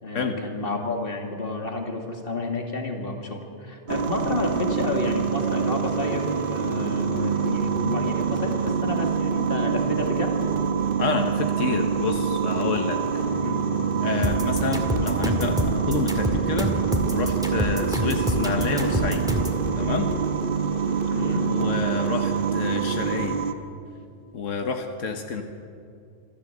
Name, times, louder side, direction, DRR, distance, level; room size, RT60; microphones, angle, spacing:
voice 1, 0.0-10.3 13.4-13.6 21.1-21.5, left 2 dB, 50° left, 2 dB, 2.5 m, -30 dB
sound 1, 3.9-23.5, right 6 dB, 50° right, 1.2 m, -25 dB
voice 2, 11.0-13.0 14.0-16.7 17.1-19.2 19.8-20.1 21.5-23.4 24.3-25.4, left 5 dB, 90° left, 5 dB, 1.6 m, -28 dB
sound 2, 14.2-19.6, left 1 dB, 5° right, 2.0 m, -27 dB
26.0 x 13.5 x 8.0 m, 2.4 s
omnidirectional pair, 1.3 m